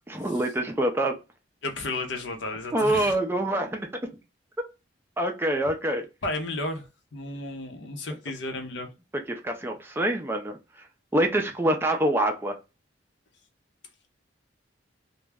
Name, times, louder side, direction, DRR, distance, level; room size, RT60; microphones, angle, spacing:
voice 1, 0.1-1.2 2.7-3.9 5.2-6.1 9.3-10.6 11.1-12.6, right 1 dB, 10° right, 0.4 m, -25 dB
voice 2, 1.6-3.2 6.2-8.9, left 2 dB, 75° left, 0.7 m, -33 dB
2.3 x 2.0 x 3.3 m
head